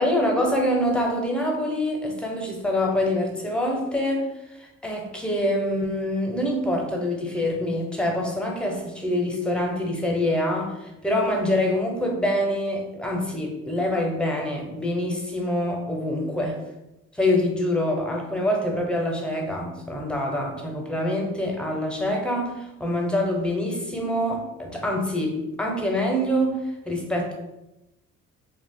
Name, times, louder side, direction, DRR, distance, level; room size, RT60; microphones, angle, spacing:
voice 1, 0.0-4.3 4.5-16.6 17.1-27.3, left 1 dB, 5° left, 0 dB, 0.6 m, -25 dB
2.3 x 2.2 x 3.6 m, 0.94 s
cardioid pair, 90°, 30 cm